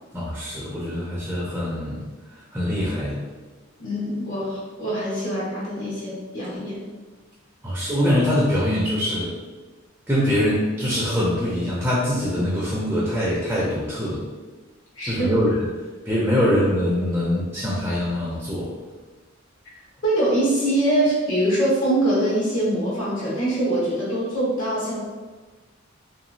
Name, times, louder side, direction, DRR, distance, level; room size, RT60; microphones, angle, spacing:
voice 1, 0.1-2.0 2.5-3.2 7.6-9.3 10.1-14.2 15.0-15.7 16.1-18.7, equal, 10° right, -6 dB, 0.5 m, -23 dB
voice 2, 3.8-6.9 15.0-15.3 20.0-25.0, right 1 dB, 65° left, -7 dB, 1.2 m, -23 dB
2.9 x 2.3 x 2.6 m, 1.3 s
head